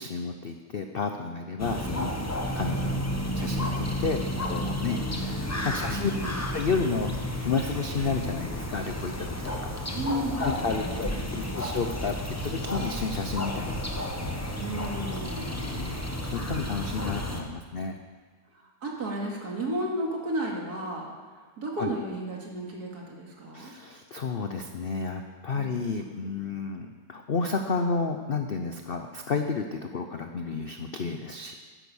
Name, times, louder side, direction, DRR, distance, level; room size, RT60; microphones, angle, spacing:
voice 1, 0.0-2.2 2.5-3.1 3.3-6.1 6.5-9.7 10.3-12.2 12.4-13.8 15.6-18.0 21.8-21.9 23.5-31.5, left 4 dB, 55° left, 5 dB, 0.6 m, -31 dB
sound 1, 1.6-17.4, equal, 10° left, 0.8 m, -32 dB
voice 2, 5.8-6.4 9.9-11.7 14.6-15.7 18.5-21.1 21.6-23.7 25.5-25.7, right 1 dB, 60° right, -1 dB, 2.7 m, -33 dB
10.5 x 10.0 x 7.1 m, 1.5 s
omnidirectional pair, 1.8 m